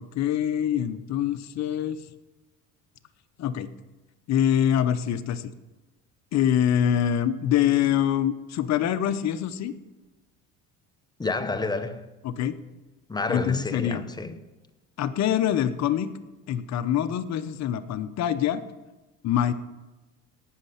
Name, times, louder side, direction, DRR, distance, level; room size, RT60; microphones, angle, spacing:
voice 1, 0.0-2.0 3.4-3.7 4.3-5.5 6.3-9.7 12.2-12.6 13.3-14.0 15.0-16.1 16.5-18.6 19.2-19.5, left 10 dB, 55° left, 0.9 m, -24 dB
voice 2, 11.2-12.1 13.1-14.4, left 3 dB, 10° left, 0.9 m, -29 dB
17.5 x 6.5 x 5.8 m
cardioid pair, 115°, 32 cm